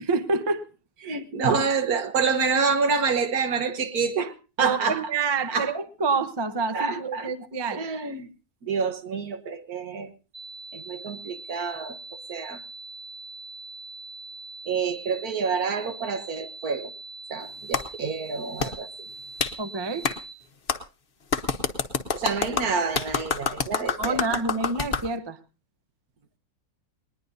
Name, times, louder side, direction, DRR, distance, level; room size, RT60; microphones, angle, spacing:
voice 1, 0.1-0.6 4.6-7.8 19.6-20.1 24.0-25.4, right 4 dB, 25° right, 11 dB, 0.5 m, -27 dB
voice 2, 1.0-5.0 5.5-5.7 6.7-7.3 7.7-8.3 8.6-10.1 10.7-12.0 12.3-12.6 14.7-16.9 17.3-18.9 22.1-24.2, right 5 dB, 65° right, 9 dB, 1.6 m, -27 dB
sound 1, 10.3-20.3, right 2 dB, 45° right, 2.9 m, -42 dB
Clapping, 17.7-17.8 18.6-18.7 19.4-19.5 20.0-20.2 20.7-20.8 21.3-25.1, left 5 dB, 40° left, 1.0 m, -27 dB
20.0 x 20.0 x 2.7 m, 0.32 s
omnidirectional pair, 1.7 m